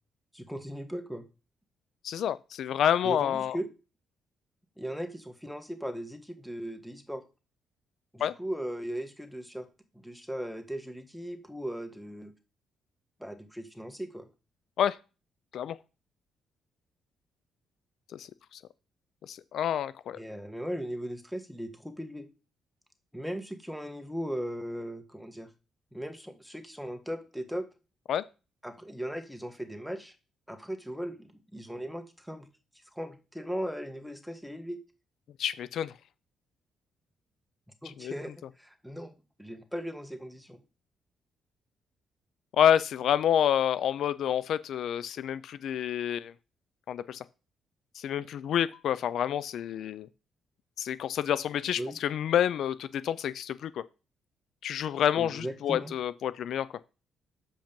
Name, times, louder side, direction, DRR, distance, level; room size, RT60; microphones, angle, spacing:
voice 1, 0.3-1.2 3.0-3.7 4.8-7.2 8.1-9.7 9.9-12.3 13.2-14.3 20.2-22.3 23.1-25.5 25.9-27.7 28.6-30.1 30.5-32.5 32.9-34.8 37.8-40.6 51.8-52.0 55.2-55.9, equal, ahead, 1.5 m, -38 dB
voice 2, 2.0-3.6 8.2-8.3 14.8-15.0 15.5-15.8 18.1-18.6 19.2-20.2 28.1-28.2 35.4-35.9 38.0-38.1 42.5-46.3 46.9-47.2 47.9-50.1 50.8-53.8 54.6-56.7, left 10 dB, 70° left, 0.3 m, -28 dB
7.1 x 5.2 x 5.2 m
cardioid pair, 90°, 0 cm